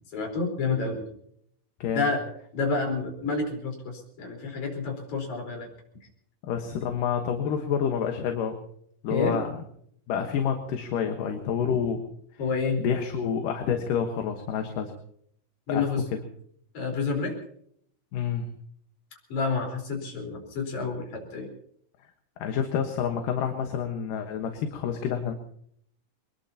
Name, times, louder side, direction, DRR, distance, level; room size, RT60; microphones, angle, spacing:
voice 1, 0.1-1.1 2.0-2.2 2.5-5.7 9.1-9.4 12.4-12.9 15.7-16.0 16.7-17.4 19.3-21.5, left 4 dB, 55° left, 1 dB, 5.6 m, -29 dB
voice 2, 6.5-8.6 9.0-9.6 10.1-12.0 12.8-14.9 15.7-16.2 18.1-18.5 22.4-25.3, left 7 dB, 75° left, 4 dB, 2.9 m, -28 dB
23.0 x 21.5 x 2.9 m, 0.66 s
omnidirectional pair, 3.9 m